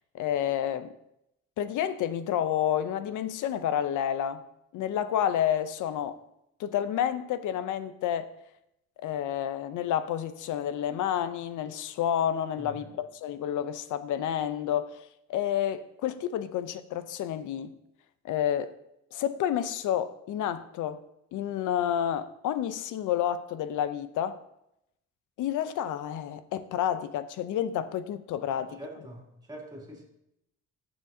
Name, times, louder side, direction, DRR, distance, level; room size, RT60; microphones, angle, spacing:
voice 1, 0.1-0.9 1.6-4.4 4.7-6.2 6.6-8.3 9.0-17.8 18.2-18.7 19.1-21.0 21.3-24.4 25.4-28.8, left 10 dB, 80° left, 0.6 m, -30 dB
voice 2, 12.6-13.0 28.6-30.0, right 1 dB, 15° right, 2.7 m, -45 dB
14.0 x 5.9 x 2.7 m
cardioid pair, 90°, 30 cm